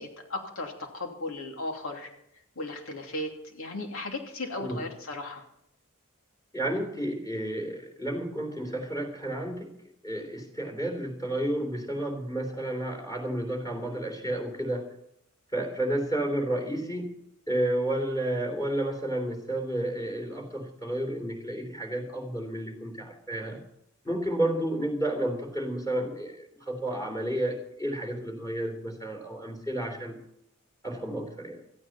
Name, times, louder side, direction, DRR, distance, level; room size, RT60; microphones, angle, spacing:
voice 1, 0.0-2.1 2.5-5.4, left 2 dB, 80° left, 2 dB, 2.9 m, -36 dB
voice 2, 6.5-9.7 10.0-14.9 15.5-17.1 17.5-23.6 24.0-30.2 30.8-31.6, right 1 dB, 15° left, 3 dB, 3.4 m, -31 dB
17.5 x 14.0 x 4.3 m, 0.75 s
head